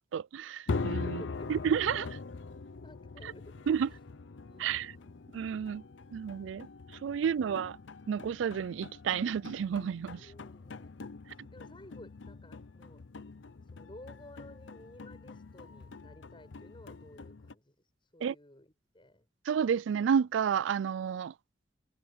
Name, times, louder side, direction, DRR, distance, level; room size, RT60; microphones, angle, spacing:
voice 1, 0.0-1.2 1.5-2.1 3.7-3.9 4.6-4.9 5.3-5.8 6.1-6.7 7.0-7.8 8.1-10.2 18.2-18.3 19.5-21.3, right 7 dB, 85° right, 0.3 m, -30 dB
sound 1, 0.7-17.5, left 4 dB, 80° left, 0.7 m, -42 dB
voice 2, 1.0-1.5 2.8-3.6 3.8-4.0 4.4-5.2 7.2-7.5 10.2-13.0 13.6-19.3, left 1 dB, 25° left, 7.6 m, -54 dB
head